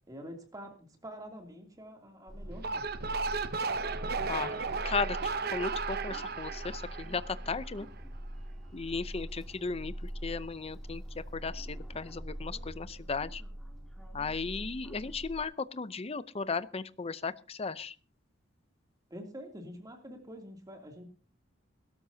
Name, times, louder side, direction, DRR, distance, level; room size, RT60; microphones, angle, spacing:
voice 1, 0.1-2.9 19.1-21.1, equal, 20° right, 3 dB, 2.8 m, -46 dB
sound 1, 2.3-15.4, equal, ahead, 2.9 m, -43 dB
sound 2, 2.5-7.8, right 4 dB, 55° right, 0.8 m, -35 dB
voice 2, 4.2-5.2 5.5-7.9 8.7-13.4 14.1-18.0, left 4 dB, 35° left, 15 dB, 0.6 m, -36 dB
21.5 x 13.0 x 2.8 m, 0.36 s
head